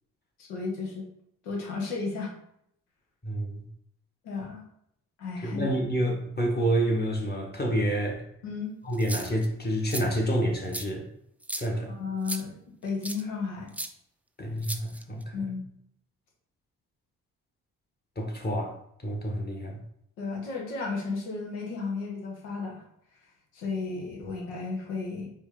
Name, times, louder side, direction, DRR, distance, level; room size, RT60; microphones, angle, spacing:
voice 1, 0.4-1.0 1.4-2.3 4.2-4.6 5.2-5.6 8.4-8.7 11.9-12.5 12.8-13.7 15.3-15.7 20.2-22.8 23.5-25.3, left 4 dB, 85° left, -1 dB, 1.0 m, -33 dB
voice 2, 3.2-3.7 5.4-8.2 8.8-11.0 11.6-11.9 14.4-15.5 18.1-18.7 19.0-19.8, right 1 dB, 25° left, 0 dB, 1.6 m, -28 dB
sound 1, 8.9-9.5 9.9-10.0 10.7-10.8 11.4-11.7 12.2-12.4 13.0-13.2 13.7-13.9 14.6-15.2, right 1 dB, 5° right, 0.4 m, -35 dB
4.4 x 3.0 x 3.8 m, 0.73 s
hypercardioid pair, 40°, 38 cm